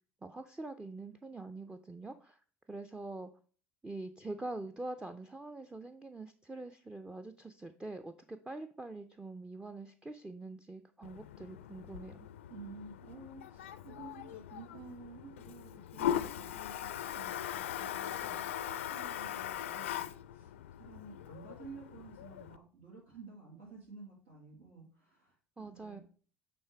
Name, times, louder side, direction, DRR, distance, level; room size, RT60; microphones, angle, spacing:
voice 1, 0.2-2.4 2.7-3.3 3.8-12.3 25.6-26.0, right 2 dB, 15° right, 9 dB, 0.5 m, -44 dB
Toilet flush, 11.0-22.6, left 11 dB, 85° left, 0.4 m, -40 dB
voice 2, 12.5-26.0, right 4 dB, 85° right, -4 dB, 2.4 m, -52 dB
8.6 x 3.4 x 4.5 m, 0.43 s
hypercardioid pair, 70°, 7 cm